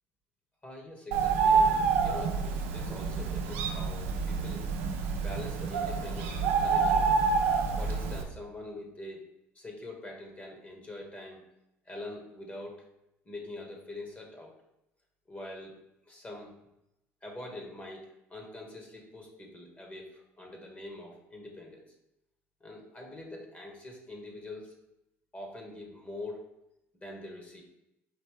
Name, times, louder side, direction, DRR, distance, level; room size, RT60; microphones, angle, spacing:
voice 1, 0.6-4.6 5.2-7.1 7.8-9.2 9.5-11.4 11.8-12.8 13.2-14.5 15.3-15.7 16.1-16.5 17.2-21.9 22.6-24.8 25.3-26.4 26.9-27.6, left 2 dB, 25° left, 0 dB, 1.5 m, -44 dB
Bird, 1.1-8.2, right 5 dB, 75° right, 0.6 m, -27 dB
5.2 x 3.1 x 3.3 m, 0.88 s
hypercardioid pair, 65°, 7 cm